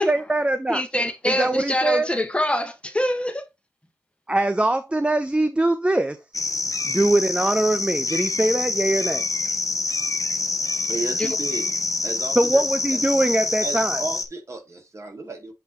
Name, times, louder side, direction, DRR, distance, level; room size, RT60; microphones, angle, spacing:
voice 1, 0.0-0.8 1.2-2.1 4.3-6.2 6.8-9.3 12.4-14.0, right 2 dB, 15° right, 0.6 m, -22 dB
voice 2, 0.7-3.4, left 1 dB, 15° left, 1.2 m, -24 dB
sound 1, 6.3-14.3, left 3 dB, 50° left, 0.9 m, -26 dB
voice 3, 10.9-11.7 12.0-12.6 12.9-13.0 13.6-15.5, right 3 dB, 45° right, 2.1 m, -33 dB
7.9 x 3.0 x 4.1 m
wide cardioid pair, 70°, 7 cm